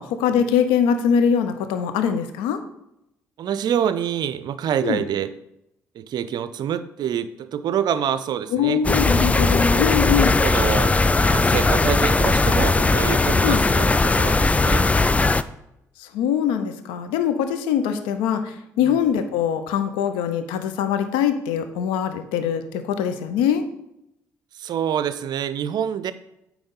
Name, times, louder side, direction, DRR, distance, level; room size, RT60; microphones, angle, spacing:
voice 1, 0.0-2.6 4.8-5.0 8.5-10.3 13.4-13.6 16.0-23.6, left 8 dB, 70° left, 9 dB, 0.7 m, -22 dB
voice 2, 3.4-5.3 5.9-8.8 10.4-14.9 18.8-19.0 24.5-26.1, right 9 dB, 50° right, 14 dB, 0.5 m, -26 dB
sound 1, 8.8-15.4, left 3 dB, 15° left, 0.3 m, -18 dB
8.6 x 3.1 x 5.5 m, 0.84 s
figure-of-eight pair, 45°, 9 cm